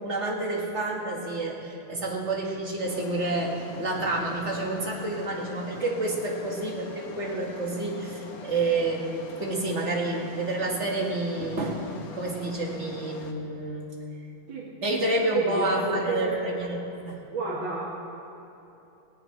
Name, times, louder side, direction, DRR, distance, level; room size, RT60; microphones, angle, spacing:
voice 1, 0.0-13.9 14.8-16.8 17.1-17.2, right 2 dB, 35° right, -1 dB, 1.9 m, -29 dB
sound 1, 2.8-13.3, left 4 dB, 55° left, 1.2 m, -44 dB
voice 2, 14.5-15.0 15.3-16.4 17.3-17.8, right 3 dB, 70° right, -5 dB, 2.3 m, -30 dB
18.0 x 17.5 x 3.3 m, 2.9 s
omnidirectional pair, 2.3 m